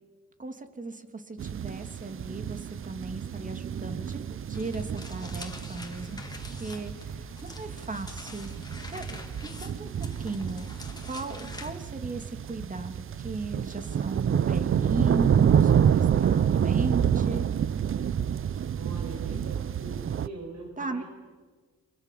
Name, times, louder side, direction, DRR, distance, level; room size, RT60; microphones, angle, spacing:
voice 1, 0.4-6.2 6.5-9.9 10.2-10.7 11.0-17.5 20.8-21.0, right 3 dB, 25° right, 7 dB, 2.9 m, -36 dB
sound 1, 1.4-20.3, right 8 dB, 45° right, 0.8 m, -28 dB
sound 2, 4.5-11.7, left 2 dB, 15° left, 3.7 m, -44 dB
voice 2, 18.8-21.0, right 2 dB, 60° right, 1 dB, 5.6 m, -42 dB
28.0 x 25.5 x 7.7 m, 1.5 s
cardioid pair, 90°, 30 cm